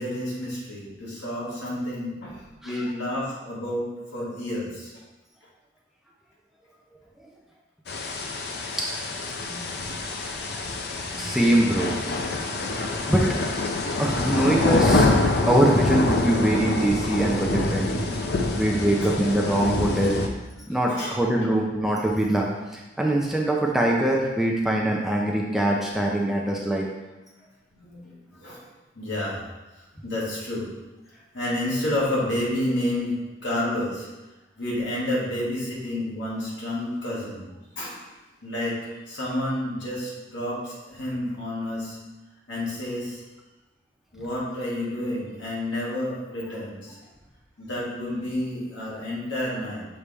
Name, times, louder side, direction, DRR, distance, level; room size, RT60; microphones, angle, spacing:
voice 1, 0.0-2.4 2.6-3.8 4.1-4.9 9.4-9.9 11.1-11.8 13.2-13.3 14.0-14.8 20.7-21.2 27.7-28.1 28.4-28.6 28.9-29.4 29.8-30.7 31.3-34.1 34.6-37.5 37.8-38.1 38.4-42.0 42.5-43.2 44.1-47.0 47.6-49.9, left 1 dB, 75° left, -6 dB, 2.1 m, -30 dB
sound 1, 7.9-20.3, left 2 dB, 55° left, 0.6 m, -26 dB
voice 2, 11.2-12.0 13.1-13.2 14.0-15.1 15.5-18.0 18.6-20.2 20.7-26.9, right 1 dB, ahead, -2 dB, 0.5 m, -23 dB
6.7 x 4.1 x 3.5 m, 1.1 s
head